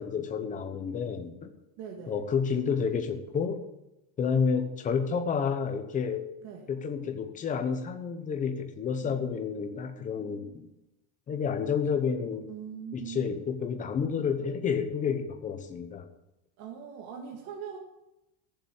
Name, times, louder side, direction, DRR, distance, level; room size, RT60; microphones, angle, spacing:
voice 1, 0.0-1.5 2.0-3.6 4.2-6.2 6.7-10.7 11.3-12.5 12.9-16.1, left 6 dB, 15° left, 6 dB, 0.9 m, -30 dB
voice 2, 1.8-2.2 6.4-6.7 12.5-13.4 16.6-17.8, right 7 dB, 50° right, 1 dB, 1.9 m, -41 dB
15.0 x 7.0 x 7.2 m, 0.91 s
cardioid pair, 175°, 45 cm